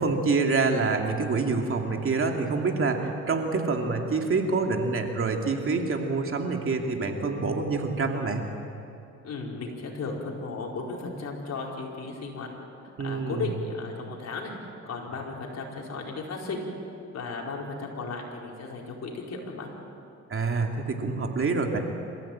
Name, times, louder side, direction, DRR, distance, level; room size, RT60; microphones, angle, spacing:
voice 1, 0.0-8.4 13.0-13.5 20.3-21.8, right 4 dB, 45° right, 3 dB, 2.7 m, -26 dB
voice 2, 9.2-12.5 13.0-14.5 14.9-16.7 17.1-19.7, left 3 dB, 60° left, -1 dB, 4.9 m, -35 dB
27.5 x 15.0 x 8.8 m, 2.6 s
cardioid pair, 90°, 30 cm